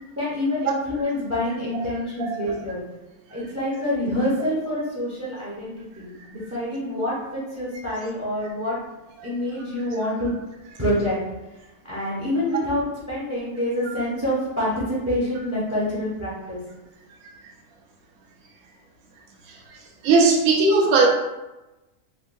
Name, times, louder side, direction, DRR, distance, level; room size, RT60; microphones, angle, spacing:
voice 1, 0.2-2.8 3.3-8.8 9.2-10.3 10.8-11.2 11.9-16.6, left 1 dB, 20° right, -7 dB, 0.5 m, -26 dB
voice 2, 20.0-21.1, right 3 dB, 70° right, 0 dB, 1.0 m, -17 dB
3.5 x 2.1 x 2.5 m, 1.0 s
omnidirectional pair, 1.6 m